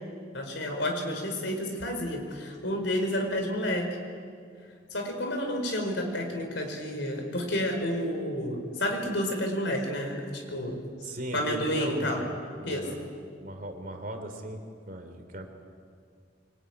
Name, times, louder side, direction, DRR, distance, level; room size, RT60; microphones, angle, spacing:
voice 1, 0.3-4.0 4.9-12.2 12.6-12.9, left 1 dB, 70° left, 3 dB, 5.3 m, -30 dB
voice 2, 11.0-13.1 13.4-14.6 14.9-15.5, right 1 dB, 45° right, 5 dB, 3.4 m, -38 dB
25.5 x 24.0 x 9.6 m, 2.2 s
head